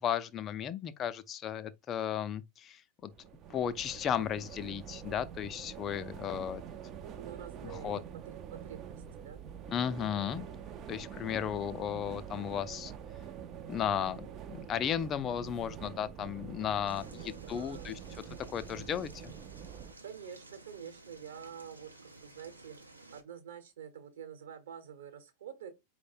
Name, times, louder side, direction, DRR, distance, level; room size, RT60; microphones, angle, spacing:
voice 1, 0.0-3.1 3.5-6.6 7.6-8.0 9.7-10.5 10.9-12.9 13.7-18.0 18.5-19.3, left 9 dB, 30° left, 0.4 m, -35 dB
sound 1, 3.0-19.9, right 8 dB, 35° right, 0.4 m, -46 dB
voice 2, 7.0-9.4 17.0-18.0 20.0-22.8 23.1-25.7, right 8 dB, 60° right, 1.0 m, -48 dB
sound 2, 16.9-23.2, right 2 dB, 85° right, 0.7 m, -54 dB
4.6 x 2.1 x 4.3 m
figure-of-eight pair, 90°, 0 cm